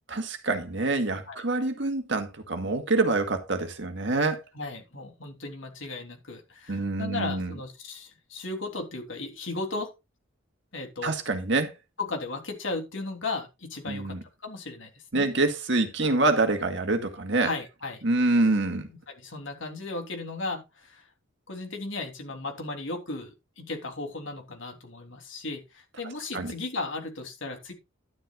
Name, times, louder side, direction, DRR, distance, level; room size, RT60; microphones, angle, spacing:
voice 1, 0.1-4.4 6.7-7.5 11.0-11.7 13.9-14.2 15.1-17.5 18.0-18.9 26.3-26.5, right 2 dB, 55° right, 2.0 m, -26 dB
voice 2, 4.5-9.9 10.7-11.1 12.1-14.2 14.4-15.3 17.4-18.0 18.9-21.0 21.5-27.7, left 3 dB, 70° left, 3.3 m, -36 dB
11.5 x 11.5 x 2.4 m
head